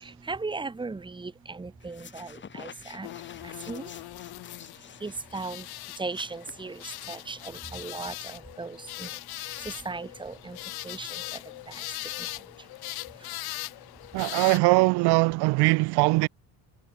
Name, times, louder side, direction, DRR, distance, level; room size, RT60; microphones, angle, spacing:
voice 1, 0.0-3.1 3.7-3.9 5.0-5.7 6.0-9.1 9.4-10.6 10.8-11.4 11.7-11.8 12.2-12.3, right 3 dB, 10° right, 2.6 m, -37 dB
sound 1, 1.8-7.2, left 7 dB, 30° left, 3.9 m, -49 dB
sound 2, 3.0-14.6, left 19 dB, 70° left, 2.0 m, -40 dB
voice 2, 14.1-16.3, right 24 dB, 85° right, 1.1 m, -21 dB
cardioid pair, 155°, 38 cm